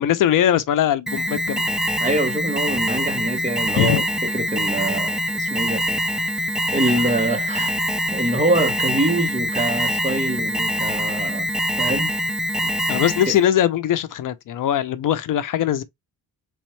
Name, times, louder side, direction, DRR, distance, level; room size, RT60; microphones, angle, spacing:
voice 1, 0.0-1.7 3.7-4.0 12.9-15.8, left 11 dB, 60° left, 0.6 m, -21 dB
Alarm, 1.1-13.5, equal, ahead, 0.3 m, -24 dB
voice 2, 2.0-4.0 4.3-5.8 6.7-7.7 8.1-11.5 11.8-12.1 12.6-12.7 13.3-13.4, right 2 dB, 20° right, 0.9 m, -24 dB
4.2 x 3.5 x 3.1 m
cardioid pair, 135°, 36 cm